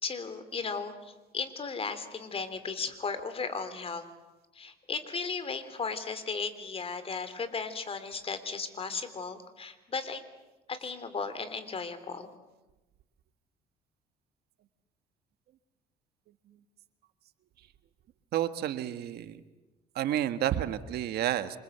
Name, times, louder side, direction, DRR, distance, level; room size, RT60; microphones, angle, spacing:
voice 1, 0.0-4.0 4.5-10.2 10.7-12.3, left 5 dB, 35° left, 12 dB, 3.2 m, -36 dB
voice 2, 18.3-19.4 19.9-21.6, right 12 dB, 70° right, 10 dB, 1.6 m, -30 dB
27.5 x 26.0 x 8.1 m, 1.1 s
cardioid pair, 110°, 17 cm